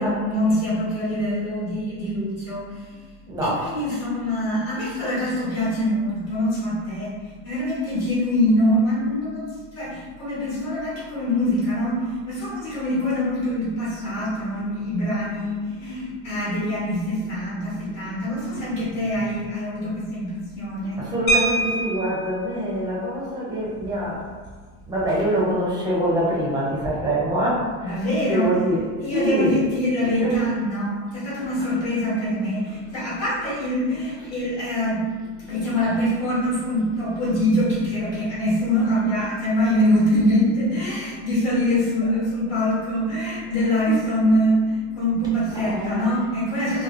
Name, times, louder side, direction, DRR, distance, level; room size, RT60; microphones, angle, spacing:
voice 1, 0.0-3.0 3.4-7.1 7.4-21.0 27.8-28.6 29.0-35.0 35.5-46.8, equal, 40° left, -7 dB, 1.3 m, -24 dB
voice 2, 3.3-3.6 21.0-24.2 24.9-28.8 29.1-29.6 30.2-30.3 45.6-46.1, right 1 dB, 10° right, -6 dB, 0.6 m, -24 dB
sound 1, 21.3-22.4 23.8-23.9 24.3-24.5 24.8-25.1, right 2 dB, 65° left, 0.9 m, -24 dB
3.0 x 2.7 x 2.5 m, 1.5 s
cardioid pair, 160°, 39 cm